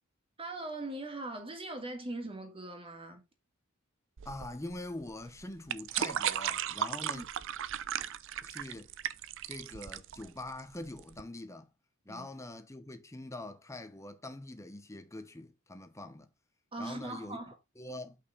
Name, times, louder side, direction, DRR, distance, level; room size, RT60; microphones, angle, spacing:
voice 1, 0.4-3.2 7.1-7.3 12.1-12.3 16.7-17.6, right 2 dB, 25° right, 2.2 m, -40 dB
voice 2, 4.2-7.2 8.4-8.9 9.5-11.7 12.0-16.3 16.8-17.4 17.8-18.2, left 1 dB, 15° left, 1.0 m, -44 dB
sound 1, 4.2-11.2, right 10 dB, 60° right, 0.5 m, -36 dB
6.6 x 5.7 x 4.1 m
head